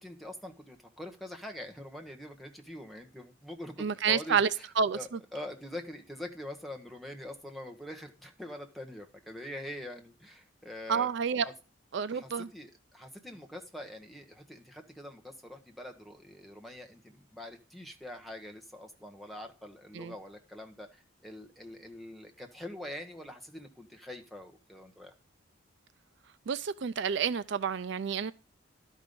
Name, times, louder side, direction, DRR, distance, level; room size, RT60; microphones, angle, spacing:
voice 1, 0.0-4.6 4.9-11.1 11.4-11.5 12.1-25.1, left 1 dB, ahead, 1.2 m, -44 dB
voice 2, 3.8-4.5 4.8-5.0 10.9-11.5 11.9-12.5 19.9-20.1 26.5-28.3, right 6 dB, 55° right, 0.4 m, -29 dB
12.0 x 5.4 x 5.2 m
head